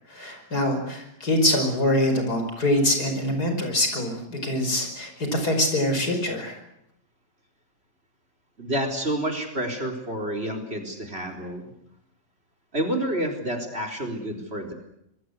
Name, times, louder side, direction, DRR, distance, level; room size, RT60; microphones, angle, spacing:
voice 1, 0.1-6.6, left 1 dB, 60° left, 5 dB, 5.8 m, -24 dB
voice 2, 8.6-11.6 12.7-14.7, right 1 dB, 35° right, 3 dB, 4.2 m, -29 dB
26.0 x 21.5 x 8.2 m, 0.79 s
omnidirectional pair, 1.9 m